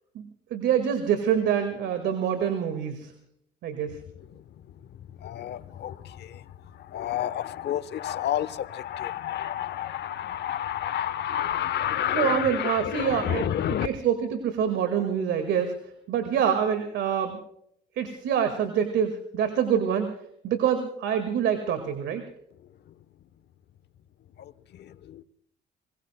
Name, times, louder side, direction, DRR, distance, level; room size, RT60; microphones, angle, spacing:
voice 1, 0.1-3.1 3.6-4.0 12.1-15.8 16.1-17.4 18.0-20.1 20.4-22.2, right 8 dB, 75° right, 1.9 m, -26 dB
voice 2, 5.2-6.4 6.9-13.9 24.4-25.2, left 11 dB, 65° left, 1.0 m, -30 dB
26.0 x 20.5 x 2.2 m
supercardioid pair, 65°, 19 cm